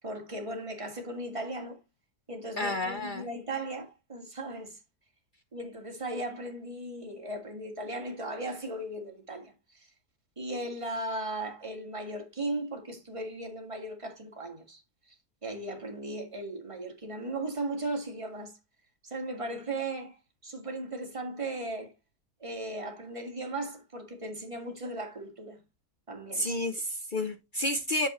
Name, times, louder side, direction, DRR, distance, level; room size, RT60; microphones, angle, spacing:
voice 1, 0.0-1.8 2.3-4.8 5.5-9.9 10.4-14.8 15.4-18.5 19.0-21.9 22.4-25.6 26.1-26.5, right 2 dB, 20° right, 1.7 m, -37 dB
voice 2, 2.6-3.3 26.3-28.1, left 1 dB, 60° left, 0.5 m, -30 dB
8.3 x 6.8 x 3.0 m
omnidirectional pair, 1.7 m